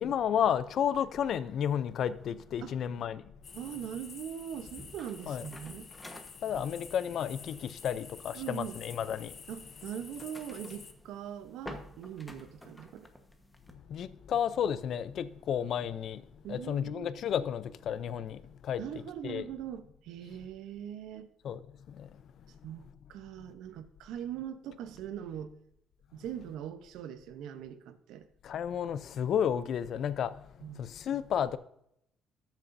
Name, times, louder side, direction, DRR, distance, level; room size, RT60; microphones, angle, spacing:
voice 1, 0.0-3.2 5.3-5.5 6.4-9.4 13.7-16.2 16.5-18.8 19.2-19.4 21.4-21.6 21.9-22.1 28.4-31.6, left 9 dB, 60° left, 0.5 m, -32 dB
sound 1, 3.4-10.9, left 6 dB, 45° left, 0.9 m, -50 dB
voice 2, 3.5-5.9 8.3-8.8 9.5-13.1 16.4-17.1 18.8-21.3 22.6-25.5 26.1-28.3 30.6-30.8, right 9 dB, 80° right, 0.8 m, -41 dB
sound 2, 4.5-13.7, left 1 dB, 10° left, 1.2 m, -51 dB
13.5 x 7.4 x 2.6 m
cardioid pair, 115°, 0 cm